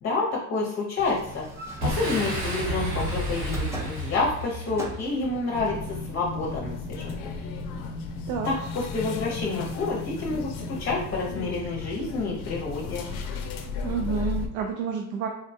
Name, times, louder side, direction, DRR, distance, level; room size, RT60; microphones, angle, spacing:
voice 1, 0.0-1.4 1.8-7.3 8.4-10.5 10.8-13.1, left 3 dB, 35° left, -2 dB, 0.7 m, -29 dB
sound 1, 1.0-7.7 12.7-13.6, right 2 dB, 10° right, 0.7 m, -41 dB
Boom, 1.8-5.4, equal, 55° right, 1.1 m, -31 dB
sound 2, 5.5-14.5, left 4 dB, 90° left, 0.6 m, -34 dB
voice 2, 13.8-15.3, right 6 dB, 80° right, 3 dB, 0.5 m, -29 dB
3.6 x 2.2 x 2.6 m, 0.72 s
cardioid pair, 105°, 34 cm